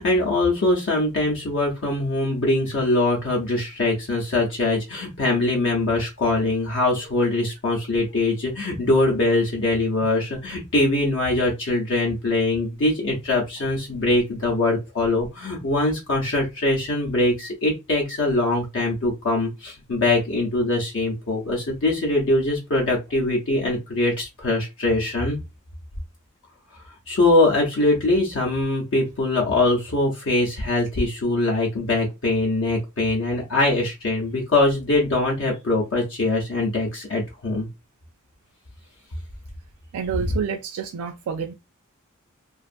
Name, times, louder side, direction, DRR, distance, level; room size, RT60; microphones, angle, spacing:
voice 1, 0.0-25.4 27.1-37.7, left 2 dB, 65° left, 0.7 m, -22 dB
voice 2, 39.9-41.5, right 6 dB, 85° right, 0.4 m, -29 dB
2.5 x 2.4 x 2.4 m
head